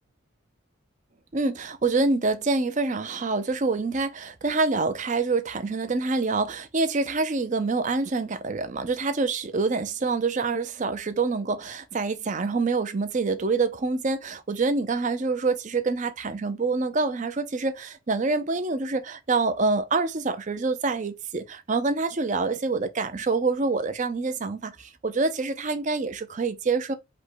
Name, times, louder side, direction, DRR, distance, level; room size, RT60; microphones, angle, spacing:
voice 1, 1.3-26.9, right 3 dB, 40° right, 0.5 m, -26 dB
5.0 x 2.2 x 3.9 m
head